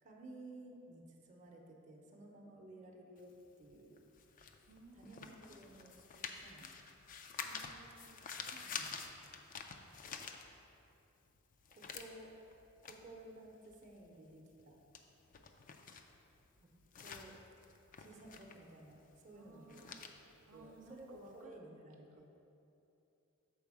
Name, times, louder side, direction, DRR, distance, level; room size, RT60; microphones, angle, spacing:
voice 1, 0.0-4.0 4.9-6.8 8.4-9.1 11.7-12.3 12.8-14.8 17.0-17.3 18.0-19.9 20.5-22.3, right 1 dB, 35° right, -1 dB, 0.7 m, -55 dB
sound 1, 3.2-10.9 11.3-21.3, left 6 dB, 40° left, 0.4 m, -49 dB
voice 2, 4.7-5.7 7.4-8.2 8.6-9.1 19.3-20.0 20.5-21.6 22.1-22.2, right 2 dB, 70° right, 1 dB, 0.7 m, -59 dB
7.0 x 4.6 x 4.8 m, 2.8 s
head